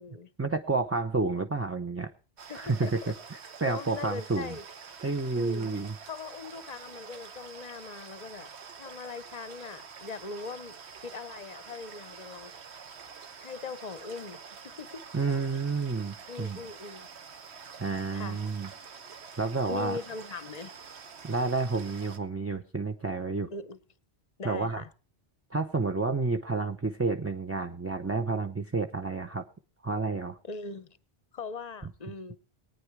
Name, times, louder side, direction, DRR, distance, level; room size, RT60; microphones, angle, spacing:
voice 1, 0.4-2.1 2.5-3.0 3.3-4.6 5.0-5.9 15.1-16.6 17.8-18.7 19.4-20.0 21.2-23.5 24.4-24.8 25.5-29.4 29.8-30.4, right 3 dB, 15° right, 0.5 m, -30 dB
sound 1, 2.4-22.2, right 6 dB, 80° right, 1.3 m, -47 dB
voice 2, 2.5-3.1 3.6-4.7 5.4-5.7 6.1-8.5 8.8-10.8 11.0-12.6 13.4-14.4 14.6-15.0 16.3-17.1 18.1-18.4 19.7-20.7 23.5-23.8 24.4-24.9 30.5-30.9 31.3-32.4, left 4 dB, 45° left, 0.8 m, -40 dB
19.5 x 9.3 x 4.7 m
omnidirectional pair, 1.1 m